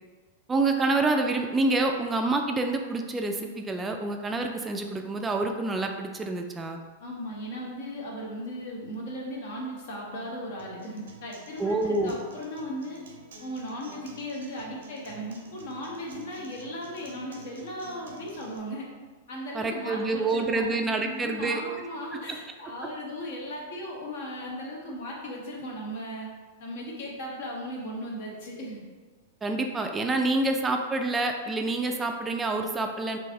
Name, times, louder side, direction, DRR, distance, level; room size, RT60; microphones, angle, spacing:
voice 1, 0.5-6.8 11.6-12.2 19.5-21.6 29.4-33.2, right 2 dB, 15° right, 4 dB, 0.3 m, -27 dB
voice 2, 7.0-13.0 13.4-18.9 19.3-20.7 21.0-26.3 26.6-28.8, equal, 60° left, -2 dB, 0.9 m, -37 dB
Acoustic guitar, 10.6-18.6, right 2 dB, 70° right, 0.6 m, -50 dB
3.2 x 2.5 x 3.5 m, 1.4 s
hypercardioid pair, 100°, 0 cm